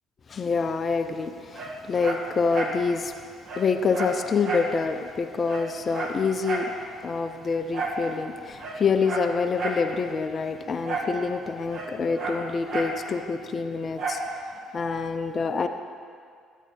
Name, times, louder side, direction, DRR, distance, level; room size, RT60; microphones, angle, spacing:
voice 1, 0.3-3.1 3.6-6.7 7.0-14.2 14.7-15.7, left 4 dB, 40° left, 7 dB, 0.5 m, -26 dB
Dog, 1.5-2.8 3.1-3.2 3.5-4.7 5.1-5.2 5.4-6.7 7.7-8.0 8.5-9.9 10.8-11.2 11.4-13.0 14.0-14.3 14.8-14.9, right 2 dB, 55° right, 1.3 m, -32 dB
14.0 x 8.2 x 2.8 m, 2.2 s
hypercardioid pair, 55°, 0 cm